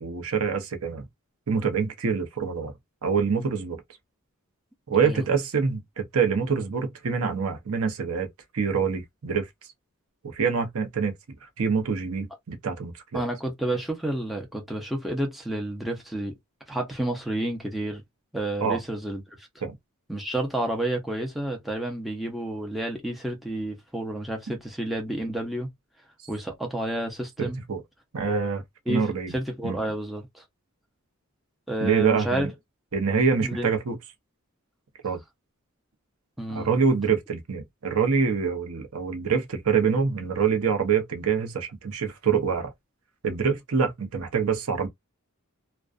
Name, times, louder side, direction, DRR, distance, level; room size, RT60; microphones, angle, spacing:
voice 1, 0.0-1.1 1.5-2.7 3.0-3.8 4.9-8.3 8.5-9.5 10.2-11.1 11.4-13.2 18.6-18.8 19.6-19.7 27.4-27.8 28.1-29.3 29.6-29.8 31.8-32.5 32.9-34.0 35.0-35.2 36.5-42.7 43.2-44.9, right 6 dB, 80° right, 0.7 m, -25 dB
voice 2, 13.1-16.3 16.7-18.0 18.3-19.5 20.1-25.7 26.3-27.6 28.9-30.4 31.7-32.5 33.4-33.7 36.4-36.7, right 1 dB, ahead, 0.6 m, -30 dB
2.4 x 2.2 x 2.4 m
head